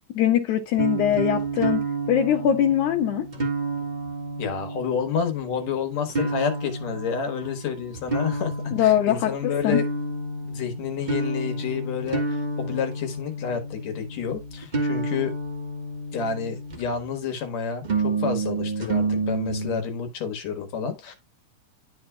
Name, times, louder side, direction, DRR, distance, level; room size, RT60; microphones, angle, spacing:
voice 1, 0.2-1.8 2.1-3.2 8.7-9.8, left 10 dB, 85° left, 2.4 m, -22 dB
sound 1, 0.7-17.0 17.8-19.8, right 2 dB, 35° right, 0.7 m, -30 dB
voice 2, 4.4-8.5 8.8-9.9 10.4-15.4 16.1-21.1, left 6 dB, 65° left, 2.5 m, -29 dB
11.5 x 4.5 x 2.3 m
omnidirectional pair, 3.4 m